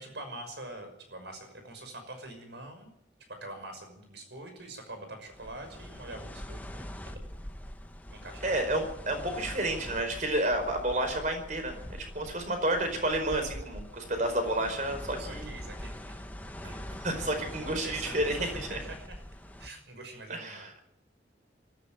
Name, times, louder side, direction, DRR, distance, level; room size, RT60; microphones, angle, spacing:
voice 1, 0.0-2.9 3.3-7.2 8.1-8.5 15.2-16.3 16.6-16.8 17.6-19.2 19.6-20.8, right 2 dB, 75° right, 6 dB, 6.0 m, -45 dB
sound 1, 5.3-19.7, equal, 10° left, 1.0 m, -43 dB
voice 2, 8.4-15.5 16.6-18.8 20.3-20.6, right 1 dB, 45° right, 6 dB, 4.8 m, -31 dB
19.0 x 14.5 x 9.4 m, 0.79 s
head